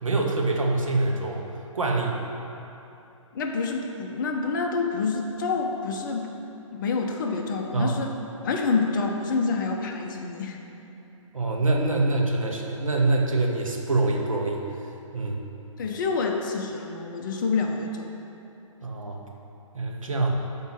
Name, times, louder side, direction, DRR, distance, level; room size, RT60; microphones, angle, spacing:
voice 1, 0.0-1.4 1.7-2.2 7.7-7.9 11.3-14.6 15.1-15.4 18.8-19.2 19.7-20.3, right 2 dB, 75° right, 0 dB, 0.9 m, -25 dB
voice 2, 3.3-6.3 6.7-8.1 8.4-10.6 15.8-18.1, left 4 dB, 35° left, 1 dB, 0.6 m, -27 dB
5.2 x 3.7 x 5.8 m, 2.9 s
figure-of-eight pair, 130°, 17 cm